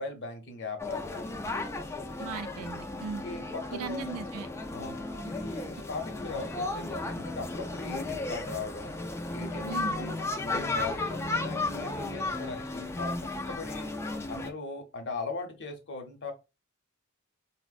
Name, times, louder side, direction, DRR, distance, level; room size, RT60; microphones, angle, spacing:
voice 1, 0.0-1.7 3.2-4.1 4.7-8.9 9.3-13.9 14.3-16.3, left 3 dB, 55° left, 0.8 m, -39 dB
sound 1, 0.8-14.5, left 2 dB, 10° left, 0.3 m, -34 dB
voice 2, 2.2-3.2 3.7-4.5 9.7-10.0, right 5 dB, 85° right, 0.4 m, -38 dB
4.3 x 2.1 x 2.4 m
head